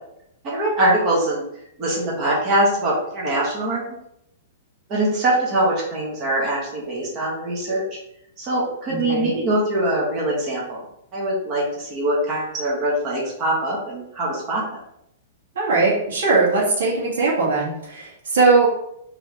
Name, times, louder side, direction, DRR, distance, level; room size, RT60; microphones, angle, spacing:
voice 1, 0.4-1.4 1.8-3.8 4.9-7.8 8.4-10.8 11.1-14.6, right 1 dB, 25° right, -5 dB, 1.4 m, -22 dB
voice 2, 8.9-9.3 15.5-18.7, right 3 dB, 85° right, -4 dB, 1.8 m, -20 dB
4.5 x 3.4 x 3.2 m, 0.76 s
hypercardioid pair, 170°, 0 cm